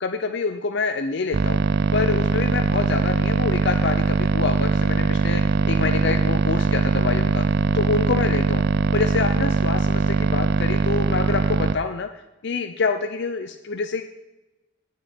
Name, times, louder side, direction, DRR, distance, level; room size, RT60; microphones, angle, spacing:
voice 1, 0.0-1.6 1.9-7.4 7.7-8.6 8.9-14.0, left 4 dB, 60° left, 8 dB, 0.6 m, -26 dB
sound 1, 1.3-11.8, right 4 dB, 55° right, 0.4 m, -21 dB
18.0 x 6.1 x 4.4 m, 1.0 s
head